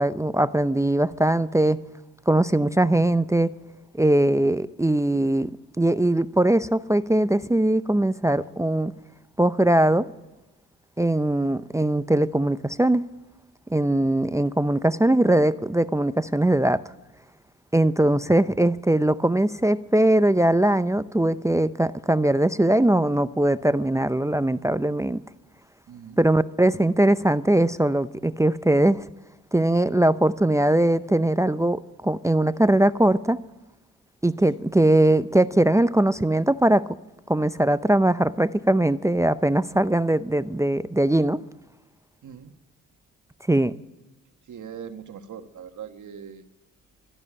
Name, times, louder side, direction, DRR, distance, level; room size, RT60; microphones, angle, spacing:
voice 1, 0.0-1.8 2.3-3.5 3.9-5.5 5.8-8.9 9.4-10.1 11.0-13.0 13.7-16.8 17.7-25.2 26.2-29.0 29.5-33.4 34.2-36.8 37.3-41.4 43.5-43.7, right 1 dB, 10° right, 15 dB, 0.6 m, -21 dB
voice 2, 25.9-26.2 34.4-34.7 42.2-42.5 44.5-46.4, right 8 dB, 60° right, 8 dB, 1.5 m, -41 dB
13.5 x 12.0 x 8.7 m, 1.0 s
supercardioid pair, 50°, 34 cm